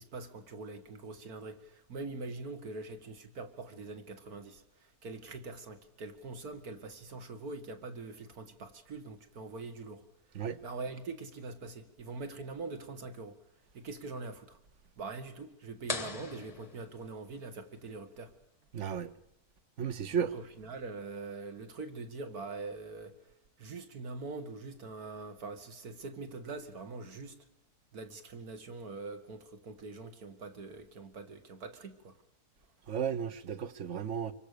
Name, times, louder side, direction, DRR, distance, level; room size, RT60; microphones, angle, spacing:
voice 1, 0.0-10.0 10.3-13.4 13.7-14.6 15.0-18.3 20.1-23.1 23.6-27.4 27.9-32.2, right 3 dB, 70° right, 2.5 m, -43 dB
sound 1, 15.9-17.6, left 4 dB, 25° left, 1.0 m, -40 dB
voice 2, 18.7-19.1 19.8-20.3 32.9-34.3, right 7 dB, 50° right, 1.4 m, -34 dB
27.0 x 24.0 x 6.8 m
omnidirectional pair, 1.7 m